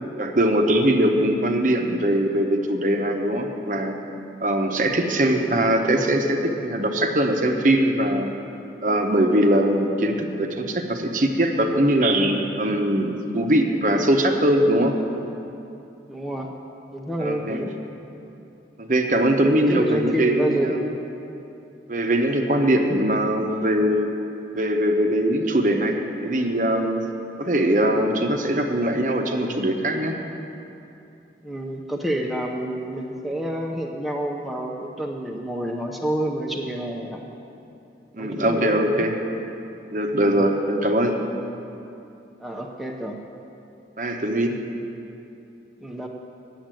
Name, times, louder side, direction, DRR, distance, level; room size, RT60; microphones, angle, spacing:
voice 1, 0.2-3.9 4.4-8.3 8.8-14.9 17.2-17.6 18.8-20.9 21.9-24.1 24.5-27.0 27.4-30.2 38.1-39.2 39.9-41.2 44.0-44.6, right 1 dB, 45° right, 4 dB, 0.8 m, -21 dB
voice 2, 16.1-16.5 16.9-17.7 19.7-21.0 31.4-37.3 38.2-39.0 40.2-40.4 42.4-43.2 45.8-46.1, right 1 dB, ahead, -1 dB, 0.6 m, -29 dB
9.1 x 7.3 x 8.9 m, 2.8 s
head